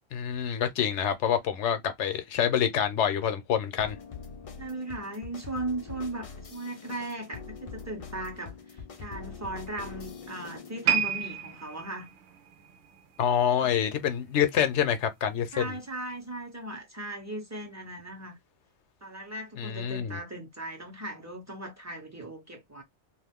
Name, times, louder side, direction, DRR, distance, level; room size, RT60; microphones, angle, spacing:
voice 1, 0.1-4.0 13.2-15.7 19.6-20.2, left 9 dB, 70° left, 0.8 m, -27 dB
sound 1, 3.8-10.9, left 5 dB, 55° left, 0.4 m, -44 dB
voice 2, 4.6-12.1 13.5-13.7 15.5-18.4 19.0-22.8, right 1 dB, 15° right, 0.6 m, -38 dB
sound 2, 10.8-14.1 14.4-14.7 15.4-15.5, right 8 dB, 75° right, 0.9 m, -32 dB
2.5 x 2.4 x 3.5 m
omnidirectional pair, 1.3 m